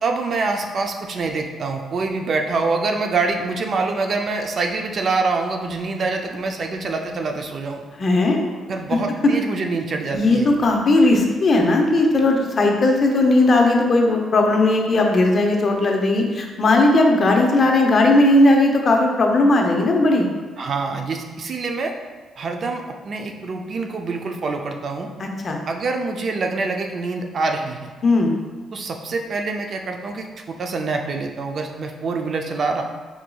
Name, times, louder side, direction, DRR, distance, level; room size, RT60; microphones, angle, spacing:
voice 1, 0.0-7.8 8.7-10.5 20.6-21.9 22.4-25.1 25.7-27.9 28.7-32.8, right 3 dB, 50° right, 4 dB, 0.4 m, -25 dB
voice 2, 8.0-8.4 10.1-20.2 25.4-25.6 28.0-28.3, left 2 dB, 45° left, 1 dB, 0.7 m, -17 dB
4.6 x 3.9 x 2.3 m, 1.4 s
cardioid pair, 90°, 0 cm